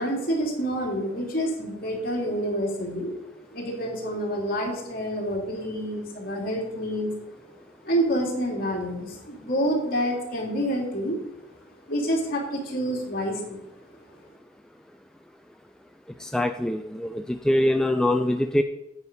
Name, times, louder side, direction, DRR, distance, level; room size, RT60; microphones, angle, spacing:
voice 1, 0.0-3.1 3.5-7.1 7.8-11.2 11.9-13.6, equal, 50° left, -2 dB, 3.0 m, -28 dB
voice 2, 16.2-18.6, left 1 dB, 5° left, 6 dB, 0.4 m, -23 dB
9.8 x 8.3 x 5.4 m, 0.87 s
head